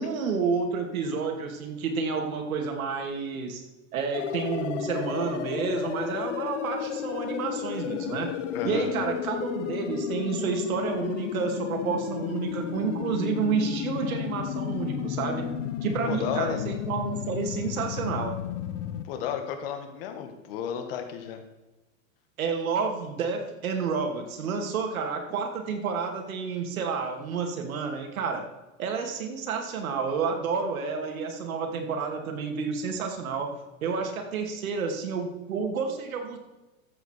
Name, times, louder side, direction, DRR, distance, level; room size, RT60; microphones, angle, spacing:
voice 1, 0.0-3.6 3.9-8.3 8.6-15.5 15.8-18.4 22.4-28.4 28.8-33.5 33.8-36.4, right 5 dB, 90° right, 4 dB, 2.6 m, -30 dB
High Score Fill - Descending Slow, 4.1-19.0, left 9 dB, 60° left, 1.1 m, -33 dB
voice 2, 8.5-8.9 16.0-16.6 19.0-21.4, left 8 dB, 45° left, 6 dB, 1.8 m, -33 dB
13.5 x 7.8 x 4.6 m, 1.1 s
supercardioid pair, 170°, 41 cm